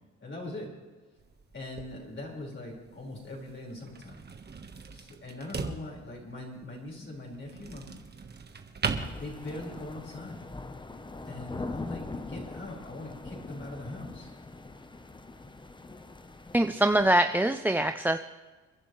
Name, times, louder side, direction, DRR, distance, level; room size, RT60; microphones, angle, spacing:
voice 1, 0.2-0.7 1.5-4.2 4.8-8.0 9.0-10.4 11.2-14.3, left 2 dB, 40° left, -2 dB, 5.0 m, -41 dB
sound 1, 1.2-9.9, right 5 dB, 35° right, 1.4 m, -40 dB
sound 2, 8.9-17.1, left 3 dB, 15° left, 0.9 m, -42 dB
voice 2, 16.5-18.2, right 1 dB, 5° right, 7 dB, 0.5 m, -24 dB
28.5 x 11.0 x 3.2 m, 1.3 s
cardioid pair, 90°, 30 cm